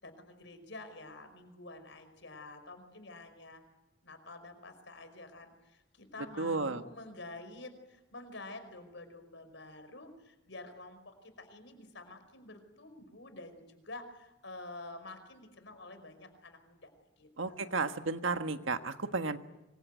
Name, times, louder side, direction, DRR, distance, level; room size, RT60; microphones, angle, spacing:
voice 1, 0.0-3.6 4.0-16.9 17.1-18.1, left 2 dB, 70° left, 8 dB, 5.1 m, -49 dB
voice 2, 6.4-6.8 17.4-19.4, right 3 dB, 85° right, 8 dB, 1.6 m, -33 dB
25.5 x 23.5 x 9.3 m, 0.99 s
head